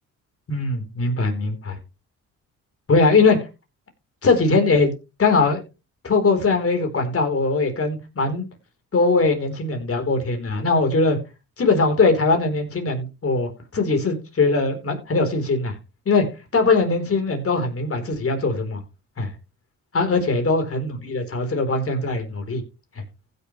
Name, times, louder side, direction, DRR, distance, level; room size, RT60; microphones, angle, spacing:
voice 1, 0.5-1.8 2.9-3.4 4.2-4.9 5.2-5.6 6.0-8.5 8.9-11.2 11.6-15.8 16.1-16.2 16.5-18.8 19.2-19.3 19.9-22.6, left 3 dB, 45° left, 6 dB, 4.1 m, -21 dB
15.5 x 6.9 x 3.3 m, 0.29 s
cardioid pair, 80°, 32 cm